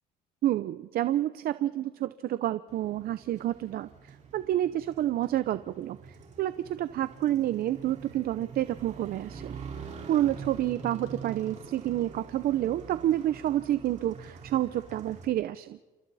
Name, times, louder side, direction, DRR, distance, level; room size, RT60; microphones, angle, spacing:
voice 1, 0.4-3.9 4.3-6.0 6.4-9.5 10.1-15.8, right 13 dB, 60° right, 13 dB, 0.7 m, -29 dB
Motorcycle, 2.7-15.3, right 5 dB, 45° right, 4.5 m, -45 dB
28.5 x 27.5 x 4.2 m, 1.2 s
cardioid pair, 110°, 17 cm